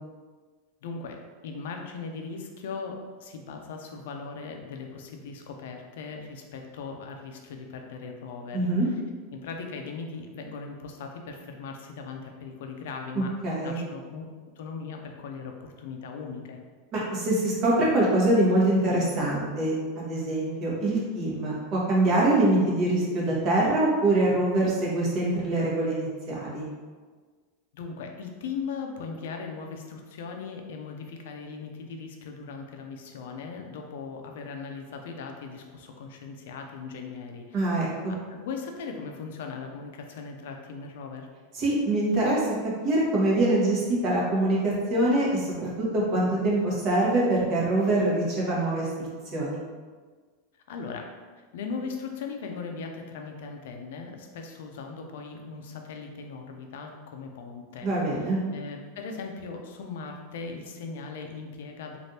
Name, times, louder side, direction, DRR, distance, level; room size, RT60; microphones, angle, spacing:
voice 1, 0.8-8.9 9.3-16.6 27.7-37.6 38.1-41.3 50.7-51.1 51.5-57.9 58.5-62.0, left 5 dB, 80° left, 3 dB, 0.4 m, -39 dB
voice 2, 8.5-8.9 13.4-13.8 16.9-26.7 37.5-38.1 41.5-42.5 42.8-49.6 57.8-58.4, right 1 dB, 40° right, -5 dB, 1.0 m, -24 dB
3.3 x 2.4 x 2.7 m, 1.5 s
supercardioid pair, 130°, 0 cm